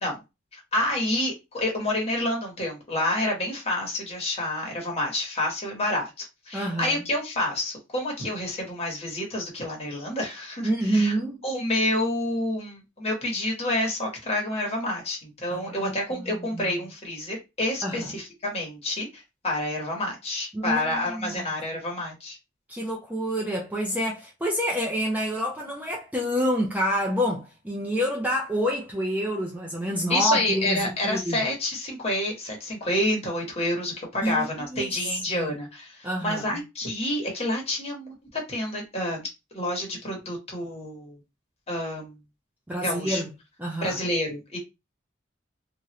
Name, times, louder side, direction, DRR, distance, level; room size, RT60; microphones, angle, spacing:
voice 1, 0.5-11.1 11.4-22.4 30.1-39.3 39.5-41.2 41.7-42.2 42.8-43.2 43.8-44.6, left 1 dB, 30° left, 1.2 m, -28 dB
voice 2, 6.5-7.0 10.6-11.4 15.5-15.9 16.5-16.8 17.8-18.1 20.5-21.4 22.7-31.4 34.2-34.9 35.3-35.6 36.0-36.6 42.7-43.3 43.6-44.0, equal, 10° right, 0.4 m, -28 dB
3.0 x 2.5 x 2.9 m
head